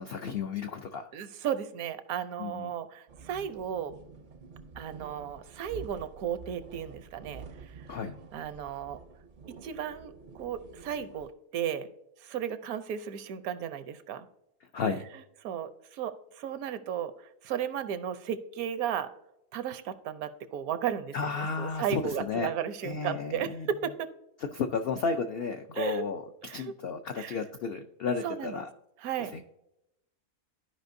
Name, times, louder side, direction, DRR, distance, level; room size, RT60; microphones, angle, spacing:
voice 1, 0.0-1.1 2.4-2.7 7.9-8.2 14.7-15.0 21.1-22.5 22.8-23.7 24.4-28.7 29.2-29.4, left 5 dB, 80° left, 7 dB, 0.5 m, -33 dB
voice 2, 1.1-3.9 4.8-7.5 8.3-9.0 9.6-11.9 12.2-14.3 15.4-17.1 17.4-19.1 19.5-24.1 25.7-26.0 26.5-26.7 27.2-27.4 28.2-28.6 29.0-29.3, right 9 dB, 75° right, 12 dB, 1.1 m, -34 dB
sound 1, 3.1-11.3, right 5 dB, 55° right, 0.5 m, -49 dB
13.5 x 5.0 x 2.6 m, 0.85 s
omnidirectional pair, 1.5 m